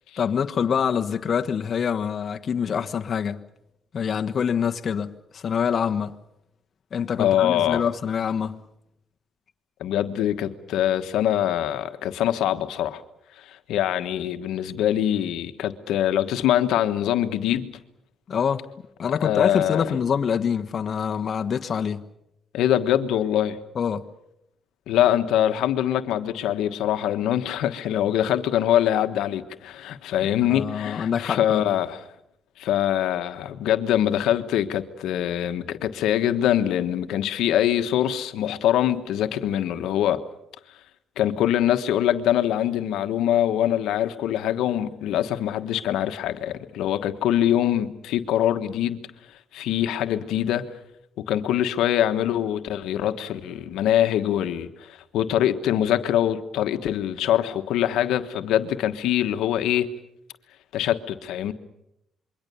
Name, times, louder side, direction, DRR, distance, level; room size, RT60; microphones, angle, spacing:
voice 1, 0.2-3.4 3.9-6.2 6.9-8.6 18.3-18.6 19.0-22.0 23.7-24.0 30.5-31.6, left 7 dB, 50° left, 1.3 m, -25 dB
voice 2, 7.2-7.8 9.8-13.0 13.4-17.7 19.2-19.9 22.5-23.6 24.9-32.0 32.6-40.2 41.2-49.0 49.5-50.7 51.2-59.9 60.7-61.5, left 11 dB, 90° left, 1.3 m, -23 dB
27.0 x 23.0 x 7.0 m
cardioid pair, 90°, 0 cm